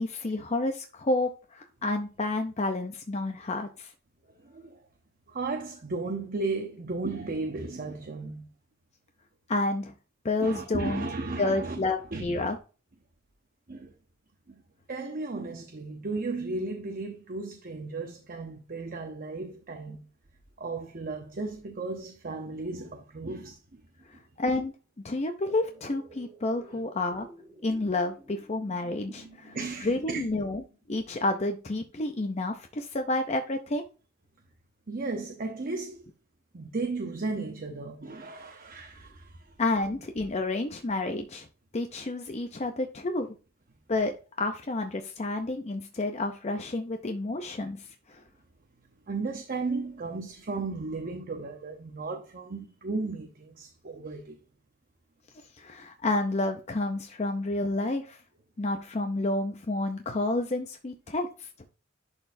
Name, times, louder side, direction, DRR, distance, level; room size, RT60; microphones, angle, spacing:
voice 1, 0.0-3.9 9.5-9.9 10.2-11.0 11.4-12.6 24.1-24.7 25.0-27.3 27.6-30.6 30.9-33.8 39.6-41.5 41.7-43.3 43.9-48.2 55.6-58.2 58.6-61.5, left 2 dB, 30° left, 0.6 m, -30 dB
voice 2, 4.4-4.8 5.3-8.5 10.4-11.8 12.1-12.5 13.7-13.9 14.5-14.6 14.9-20.0 20.6-23.6 29.5-30.3 34.9-36.0 36.5-39.5 49.1-54.4, right 3 dB, 45° right, 0.8 m, -35 dB
sound 1, 25.4-31.5 31.9-32.0, right 1 dB, 15° right, 3.1 m, -54 dB
11.0 x 4.1 x 2.6 m
head